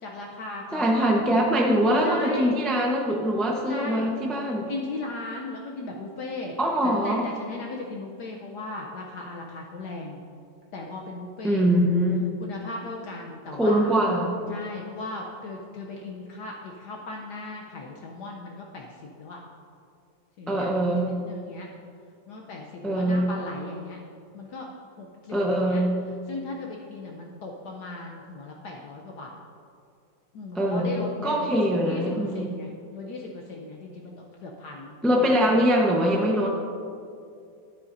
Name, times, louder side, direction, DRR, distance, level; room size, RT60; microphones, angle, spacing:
voice 1, 0.0-1.1 2.0-2.6 3.7-4.2 4.7-6.6 6.8-10.2 10.7-11.7 12.4-13.9 14.5-19.4 20.4-20.7 21.1-21.7 22.3-24.0 24.3-24.7 25.0-25.8 26.3-29.4 30.3-35.6, left 2 dB, 65° left, 0 dB, 1.2 m, -37 dB
voice 2, 0.7-4.7 6.6-7.2 11.4-12.3 13.6-14.4 20.5-21.1 22.8-23.3 25.3-25.9 30.5-32.5 35.0-36.5, equal, ahead, -1 dB, 0.3 m, -23 dB
12.5 x 10.0 x 2.6 m, 2.4 s
omnidirectional pair, 2.0 m